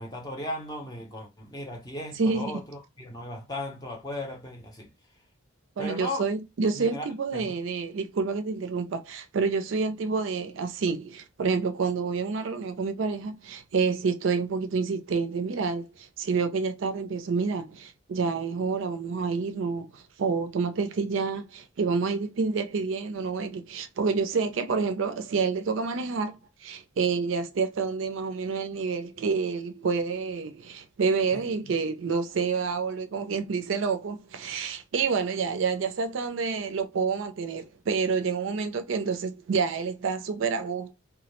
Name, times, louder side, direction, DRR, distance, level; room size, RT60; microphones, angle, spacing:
voice 1, 0.0-4.9 5.8-6.2 6.7-7.6 31.3-31.7, left 1 dB, 20° left, 0.6 m, -37 dB
voice 2, 2.2-2.6 5.8-40.9, right 5 dB, 65° right, 0.4 m, -28 dB
2.2 x 2.0 x 2.9 m
head